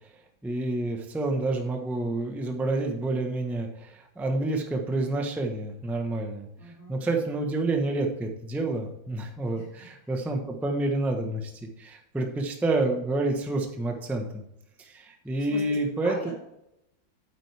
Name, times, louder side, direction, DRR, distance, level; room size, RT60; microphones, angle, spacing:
voice 1, 0.4-6.5 6.9-14.4 14.8-16.3, right 2 dB, ahead, 3 dB, 0.5 m, -29 dB
voice 2, 6.6-7.0 9.5-10.1 15.4-15.8 16.0-16.3, left 3 dB, 35° left, -4 dB, 3.4 m, -42 dB
8.9 x 8.9 x 3.4 m, 0.83 s
omnidirectional pair, 2.3 m